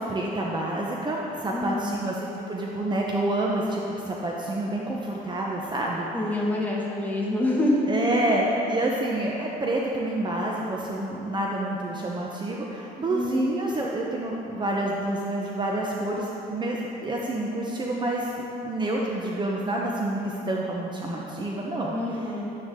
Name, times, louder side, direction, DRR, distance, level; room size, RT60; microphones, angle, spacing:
voice 1, 0.0-6.1 7.9-22.3, right 1 dB, 25° right, -2 dB, 1.0 m, -28 dB
voice 2, 1.5-2.0 6.1-7.9 13.1-13.5 21.9-22.5, left 1 dB, 10° left, -4 dB, 2.0 m, -26 dB
11.5 x 9.3 x 3.8 m, 2.9 s
cardioid pair, 110°, 17 cm